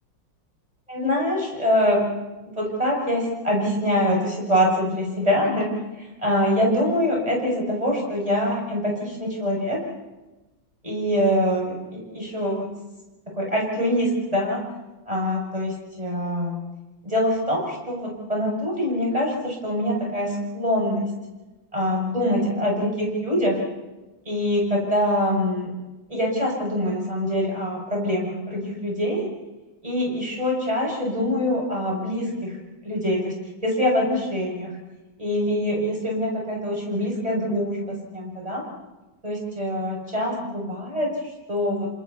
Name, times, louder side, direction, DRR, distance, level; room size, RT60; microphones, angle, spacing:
voice 1, 0.9-2.0 2.4-5.7 6.0-9.8 10.8-12.7 13.4-14.6 15.1-16.6 17.0-21.1 21.7-23.6 24.3-25.7 26.1-29.3 29.8-32.6 32.8-33.3 33.6-34.7 35.2-38.6 39.2-41.9, equal, 15° right, -2 dB, 7.1 m, -24 dB
29.5 x 27.0 x 4.3 m, 1.1 s
omnidirectional pair, 2.1 m